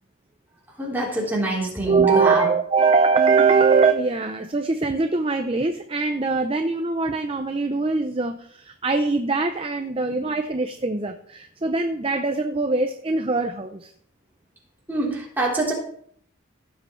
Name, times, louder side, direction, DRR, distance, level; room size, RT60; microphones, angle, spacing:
voice 1, 0.8-2.5 10.0-10.2 14.9-15.7, right 1 dB, 10° right, -5 dB, 3.6 m, -25 dB
voice 2, 1.8-13.9, right 4 dB, 25° right, 7 dB, 0.5 m, -22 dB
16.5 x 7.7 x 3.2 m, 0.62 s
head